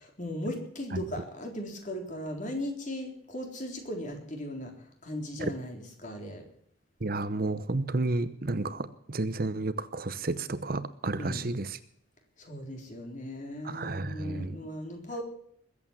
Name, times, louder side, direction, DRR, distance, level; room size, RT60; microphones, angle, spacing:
voice 1, 0.0-4.7 5.0-6.5 11.2-11.5 12.4-15.2, equal, 40° left, 3 dB, 3.9 m, -37 dB
voice 2, 7.0-11.8 13.6-14.6, right 2 dB, 50° right, 13 dB, 0.9 m, -31 dB
21.0 x 8.6 x 7.3 m, 0.68 s
head